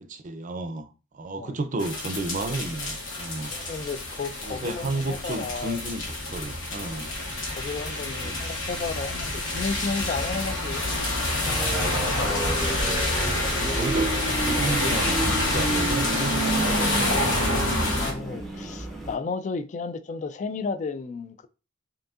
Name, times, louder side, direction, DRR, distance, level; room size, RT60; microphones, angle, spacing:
voice 1, 0.0-3.6 4.4-7.1 8.2-8.4 13.6-17.1, right 2 dB, 40° right, 0.5 m, -32 dB
Sevilla - Rain at night - Lluvia de noche, 1.8-18.1, left 2 dB, 80° left, 1.0 m, -27 dB
voice 2, 3.4-5.8 7.5-10.9 11.5-11.6 12.1-12.6 17.9-21.5, left 4 dB, 40° left, 0.3 m, -33 dB
sound 1, 11.4-19.2, right 2 dB, ahead, 0.6 m, -31 dB
5.1 x 2.7 x 2.4 m
head